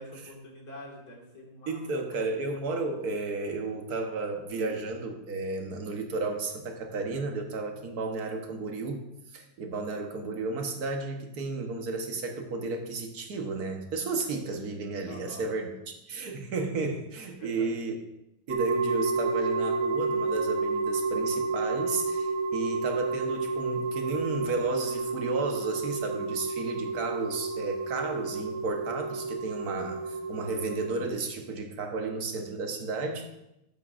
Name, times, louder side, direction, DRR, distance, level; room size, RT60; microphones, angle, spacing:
voice 1, 0.0-2.2 15.0-15.5 17.4-17.7, left 1 dB, 85° left, -1 dB, 2.5 m, -46 dB
voice 2, 1.7-9.0 9.3-18.0 18.5-33.3, right 3 dB, 85° right, 4 dB, 1.6 m, -33 dB
sound 1, 18.5-31.1, right 3 dB, 55° right, 1.0 m, -30 dB
13.0 x 9.3 x 2.5 m, 0.88 s
omnidirectional pair, 1.6 m